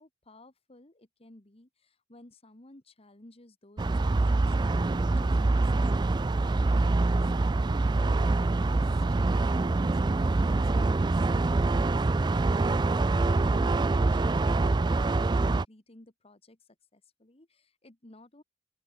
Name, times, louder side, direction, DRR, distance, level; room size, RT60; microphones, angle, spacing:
voice 1, 0.0-16.6 16.9-18.4, left 1 dB, 30° left, 1.7 m, -55 dB
sound 1, 3.8-15.6, right 2 dB, 25° right, 0.4 m, -25 dB
open air
head